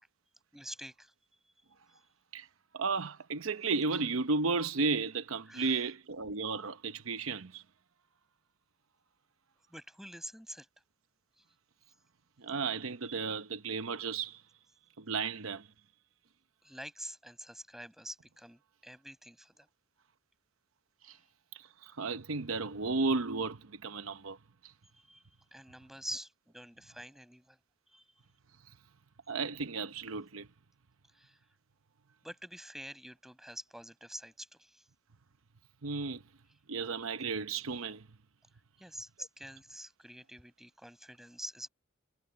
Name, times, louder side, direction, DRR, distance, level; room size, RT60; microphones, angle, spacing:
voice 1, 0.5-1.1 1.9-2.0 5.5-5.9 9.6-10.7 11.4-11.5 16.6-19.7 21.0-21.3 24.9-25.2 25.5-27.6 27.9-28.2 31.1-31.4 32.2-34.9 38.8-41.7, equal, ahead, 6.2 m, -47 dB
voice 2, 2.7-7.6 12.4-14.4 15.0-15.7 21.0-21.2 21.5-24.4 24.6-24.7 29.3-30.5 35.8-36.2 36.7-38.0, right 4 dB, 80° right, 0.8 m, -34 dB
head